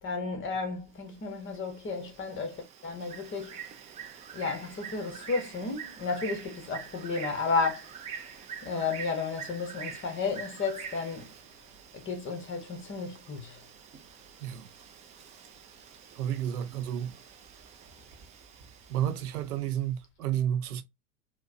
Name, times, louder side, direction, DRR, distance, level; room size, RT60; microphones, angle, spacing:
voice 1, 0.0-3.6 4.3-7.8 8.6-11.3 11.9-13.6, left 4 dB, 25° left, 1.0 m, -33 dB
Bird, 1.0-19.8, right 7 dB, 15° right, 0.4 m, -46 dB
voice 2, 16.1-17.2 18.9-20.8, right 10 dB, 70° right, 0.7 m, -31 dB
4.3 x 2.2 x 2.6 m
figure-of-eight pair, 85°, 47 cm